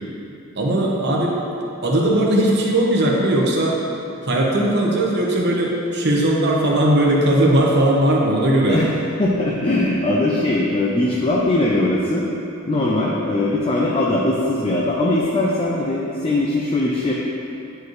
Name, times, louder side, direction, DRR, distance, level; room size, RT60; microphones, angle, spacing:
voice 1, 0.6-1.3 1.8-3.8 4.3-8.8, right 1 dB, 55° right, -2 dB, 1.1 m, -18 dB
voice 2, 9.2-12.3 12.6-17.1, left 2 dB, 25° left, -4 dB, 0.5 m, -20 dB
10.0 x 4.7 x 3.2 m, 2.8 s
head